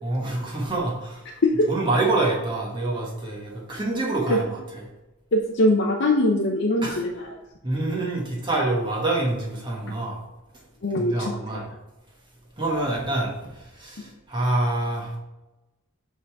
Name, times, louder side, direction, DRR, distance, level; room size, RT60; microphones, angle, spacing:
voice 1, 0.0-1.4 1.7-4.6 6.8-7.0 7.6-10.2 11.0-11.7 12.6-15.1, right 2 dB, 20° right, -3 dB, 1.3 m, -26 dB
voice 2, 5.3-7.3 9.9-10.0 10.8-11.3, left 1 dB, 55° left, 0 dB, 0.7 m, -22 dB
7.6 x 3.9 x 4.5 m, 1.0 s
head